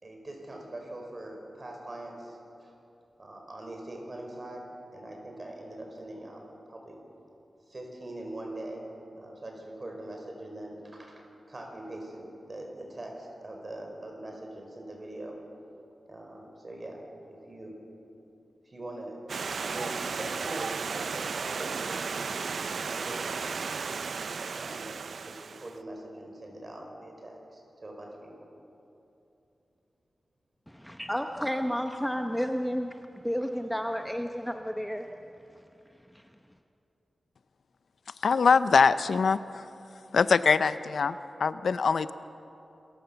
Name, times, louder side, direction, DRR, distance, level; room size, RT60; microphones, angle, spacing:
voice 1, 0.0-2.7 3.2-4.7 4.9-7.0 7.7-8.9 9.2-15.4 16.1-17.0 17.3-17.7 18.6-19.2 19.6-23.2 24.2-25.0 25.3-28.5 30.9-31.0, right 1 dB, 40° right, 1 dB, 4.9 m, -42 dB
Stream, 19.3-25.8, right 5 dB, 75° right, 0.5 m, -34 dB
voice 2, 30.7-35.1 36.1-36.2, equal, 5° left, 5 dB, 0.8 m, -31 dB
voice 3, 38.2-39.6 40.1-42.1, left 5 dB, 80° left, 14 dB, 0.5 m, -23 dB
26.5 x 15.0 x 7.0 m, 2.8 s
wide cardioid pair, 95°, 0 cm